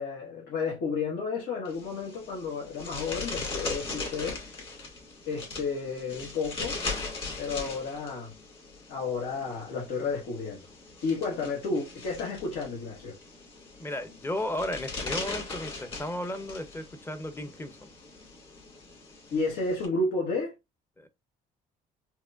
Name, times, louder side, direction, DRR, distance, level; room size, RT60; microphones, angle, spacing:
voice 1, 0.0-4.4 5.3-6.8 7.4-8.3 8.9-10.6 11.0-13.2 19.3-20.5, left 4 dB, 80° left, 1.3 m, -32 dB
sound 1, 1.7-19.9, left 3 dB, 30° left, 1.9 m, -40 dB
voice 2, 13.8-17.9 21.0-21.1, left 1 dB, 15° left, 0.5 m, -34 dB
4.7 x 2.2 x 2.4 m
cardioid pair, 110°, 17 cm